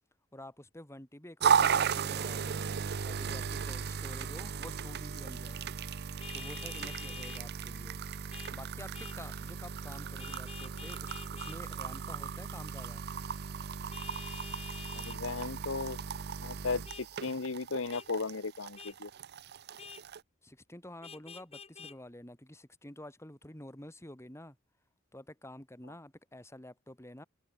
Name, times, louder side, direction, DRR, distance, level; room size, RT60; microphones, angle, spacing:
voice 1, 0.3-2.6 3.0-5.7 6.3-8.0 8.5-13.1 20.4-24.6 25.1-27.2, left 1 dB, 15° left, 2.8 m, -49 dB
sound 1, 1.4-20.2, right 7 dB, 55° right, 0.6 m, -35 dB
Vehicle horn car horn honking, 6.2-7.4 8.3-8.5 8.9-9.2 10.2-11.6 13.9-15.2 16.9-17.1 17.9-18.1 18.8-19.0 19.8-20.0 21.0-22.0, left 6 dB, 30° left, 4.6 m, -47 dB
voice 2, 14.9-16.0 16.4-19.1, left 4 dB, 75° left, 1.0 m, -36 dB
head